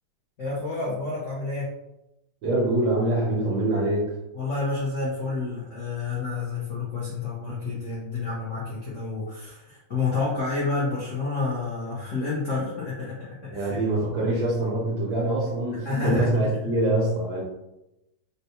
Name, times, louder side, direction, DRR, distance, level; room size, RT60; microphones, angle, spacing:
voice 1, 0.4-1.7 4.3-13.8 15.8-16.4, left 3 dB, 75° left, -6 dB, 0.7 m, -29 dB
voice 2, 2.4-4.1 13.5-17.4, right 1 dB, 70° right, -5 dB, 1.4 m, -24 dB
4.0 x 2.2 x 2.8 m, 0.92 s
omnidirectional pair, 2.3 m